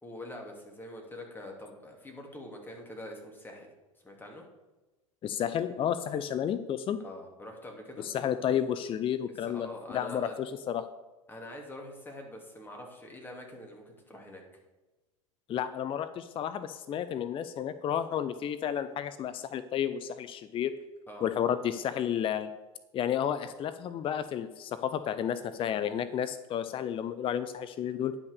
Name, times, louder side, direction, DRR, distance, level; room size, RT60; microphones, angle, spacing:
voice 1, 0.0-3.7 4.0-4.4 7.0-8.1 9.5-10.4 11.3-14.4 21.1-21.3, left 1 dB, 10° left, 1 dB, 2.8 m, -44 dB
voice 2, 5.2-7.0 8.0-10.9 15.5-20.8 21.2-22.5 22.9-28.2, left 9 dB, 30° left, 12 dB, 0.6 m, -31 dB
10.5 x 6.0 x 6.7 m, 1.1 s
hypercardioid pair, 80°, 17 cm